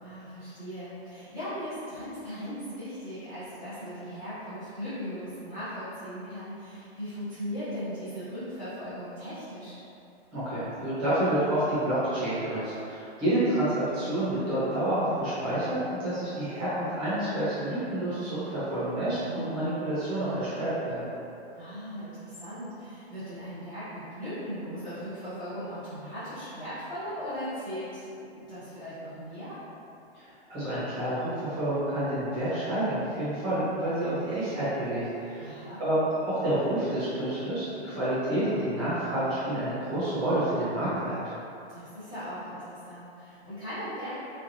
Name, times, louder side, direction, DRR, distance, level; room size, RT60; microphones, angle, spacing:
voice 1, 0.0-9.8 19.0-19.5 21.5-29.6 35.4-35.8 41.7-44.2, equal, 15° left, -16 dB, 0.7 m, -38 dB
voice 2, 10.3-21.1 30.2-35.5 35.8-41.2, right 1 dB, 15° right, -13 dB, 0.8 m, -29 dB
3.6 x 3.3 x 2.6 m, 2.8 s
hypercardioid pair, 170°, 32 cm